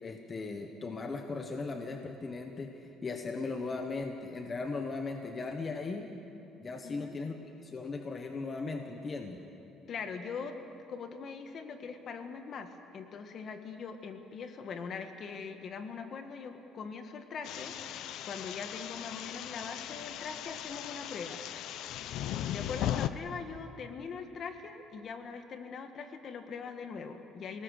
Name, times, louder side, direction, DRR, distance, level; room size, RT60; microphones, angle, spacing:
voice 1, 0.0-6.1 6.6-7.3 7.6-9.4, left 3 dB, 25° left, 4 dB, 1.3 m, -38 dB
voice 2, 6.8-7.2 9.9-10.6 10.9-17.7 18.2-21.4 22.5-27.6, left 5 dB, 45° left, 7 dB, 1.7 m, -42 dB
sound 1, 17.4-23.1, left 12 dB, 70° left, 0.7 m, -38 dB
28.5 x 19.0 x 6.6 m, 2.7 s
cardioid pair, 140°, 0 cm